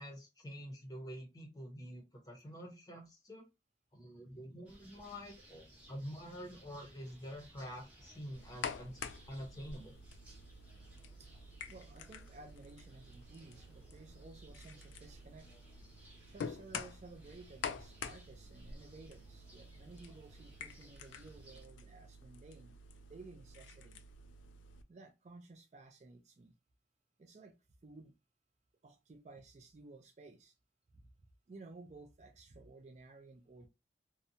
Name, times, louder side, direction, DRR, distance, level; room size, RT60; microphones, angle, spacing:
voice 1, 0.0-3.5 3.9-9.0 9.3-10.0, equal, 20° left, 0.7 m, -47 dB
sound 1, 4.6-21.6, right 1 dB, 10° right, 0.8 m, -60 dB
sound 2, 8.3-24.8, left 5 dB, 85° left, 0.3 m, -48 dB
voice 2, 11.7-15.5 16.3-22.7 23.1-24.0 24.9-26.5 27.2-27.5 27.8-28.1 28.8-30.5 30.9-31.1 31.5-33.7, right 3 dB, 40° right, 0.4 m, -55 dB
2.7 x 2.1 x 2.6 m
head